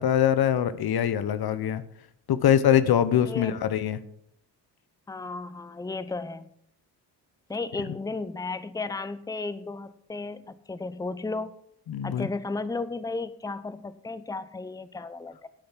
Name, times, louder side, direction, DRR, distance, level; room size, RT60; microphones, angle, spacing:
voice 1, 0.0-1.8 2.3-4.0 11.9-12.3, left 10 dB, 65° left, 14 dB, 0.9 m, -23 dB
voice 2, 3.2-3.6 5.1-6.4 7.5-11.5 12.0-15.5, left 3 dB, 10° left, 14 dB, 0.7 m, -34 dB
10.5 x 8.6 x 5.8 m, 0.70 s
supercardioid pair, 60°, 41 cm